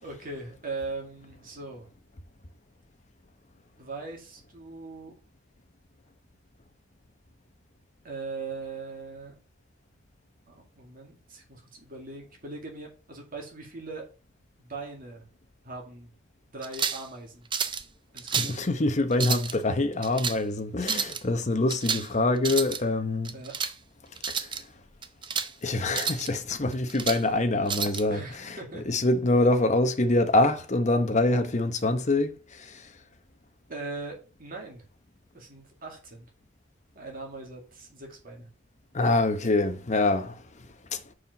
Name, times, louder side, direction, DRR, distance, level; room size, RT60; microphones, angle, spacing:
voice 1, 0.0-1.9 3.8-5.1 8.0-9.4 10.5-14.1 14.6-15.3 15.6-16.1 16.5-17.5 18.1-18.6 23.3-23.6 28.1-28.8 33.7-34.8 35.3-36.3 36.9-38.5, right 3 dB, 45° right, 2.3 m, -40 dB
sound 1, 16.6-17.1 17.5-17.8 18.2-18.6 19.1-19.5 20.0-20.4 20.8-21.2 21.7-22.1 22.4-22.8 23.3-23.7 24.2-24.6 25.0-25.5 25.9-26.3 26.7-27.2 27.7-28.0, right 6 dB, 25° right, 0.6 m, -30 dB
voice 2, 18.4-23.4 24.3-24.5 25.6-32.9 38.9-41.0, left 2 dB, 35° left, 0.9 m, -25 dB
5.6 x 4.9 x 6.5 m
head